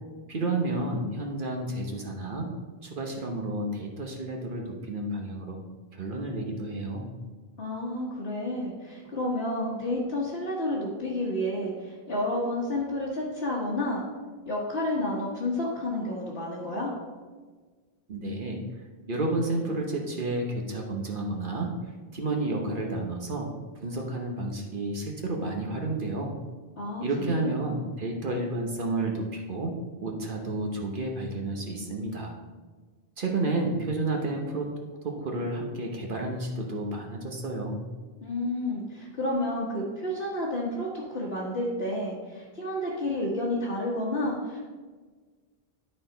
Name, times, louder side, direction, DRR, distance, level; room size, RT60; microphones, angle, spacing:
voice 1, 0.3-2.5 2.8-5.6 5.9-7.1 18.1-18.6 19.1-21.7 22.1-23.5 23.8-26.3 27.0-29.7 30.0-32.4 33.2-34.7 35.0-37.8, right 2 dB, 55° right, 1 dB, 1.1 m, -31 dB
voice 2, 7.6-14.0 14.4-16.9 26.8-27.5 38.2-44.6, left 1 dB, 70° left, -7 dB, 1.6 m, -30 dB
12.0 x 4.3 x 3.9 m, 1.4 s
omnidirectional pair, 1.0 m